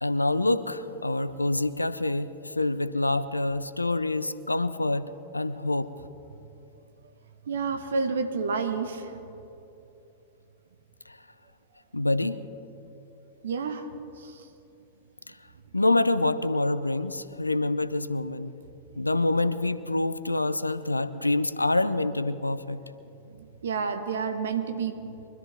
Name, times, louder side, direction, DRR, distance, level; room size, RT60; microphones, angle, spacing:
voice 1, 0.0-5.1 5.3-5.9 11.1-11.2 11.9-12.4 15.7-18.5 19.0-22.8, left 2 dB, 85° left, 14 dB, 0.5 m, -26 dB
voice 2, 7.5-9.2 13.4-13.9 14.2-14.5 18.9-19.0 23.4-25.2, right 5 dB, 65° right, 7 dB, 1.3 m, -30 dB
24.0 x 13.0 x 3.6 m, 2.9 s
figure-of-eight pair, 95°, 0 cm